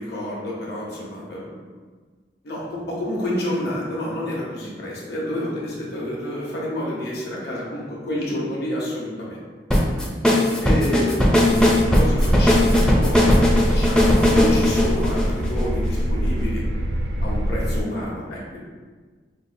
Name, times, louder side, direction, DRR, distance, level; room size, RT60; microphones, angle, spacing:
voice 1, 0.0-1.6 2.4-9.4 10.6-16.6 17.2-18.6, left 1 dB, 65° left, -5 dB, 1.0 m, -29 dB
sound 1, 9.7-16.0, left 1 dB, 5° left, 0.4 m, -18 dB
sound 2, 11.5-17.8, equal, 85° right, 0.4 m, -23 dB
5.1 x 2.1 x 2.6 m, 1.4 s
head